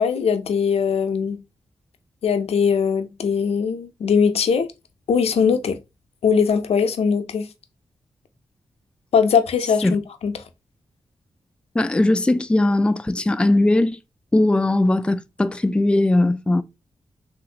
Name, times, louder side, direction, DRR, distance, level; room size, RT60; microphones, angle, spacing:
voice 1, 0.0-1.4 2.2-4.7 5.1-5.8 6.2-7.5 9.1-10.3, left 6 dB, 70° left, 0.5 m, -20 dB
voice 2, 11.7-14.0 14.3-16.6, left 2 dB, 10° left, 0.3 m, -19 dB
3.0 x 2.5 x 2.7 m
cardioid pair, 50°, 11 cm